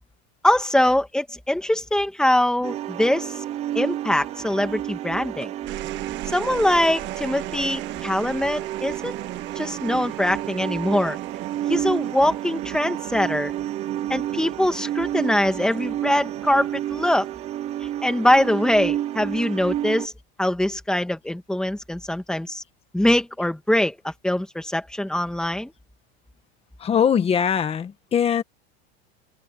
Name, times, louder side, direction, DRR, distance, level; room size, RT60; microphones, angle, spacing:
voice 1, 0.4-3.4 3.7-5.5 6.3-9.2 9.5-11.2 11.7-13.5 14.1-17.3 17.8-20.1 20.4-22.6 22.9-25.7, left 1 dB, ahead, 1.5 m, -23 dB
sound 1, 2.6-20.1, right 12 dB, 20° right, 0.4 m, -31 dB
sound 2, 5.4-18.0 19.2-19.7, right 16 dB, 35° right, 1.1 m, -38 dB
voice 2, 26.8-28.4, left 8 dB, 20° left, 1.5 m, -21 dB
supercardioid pair, 165°, 32 cm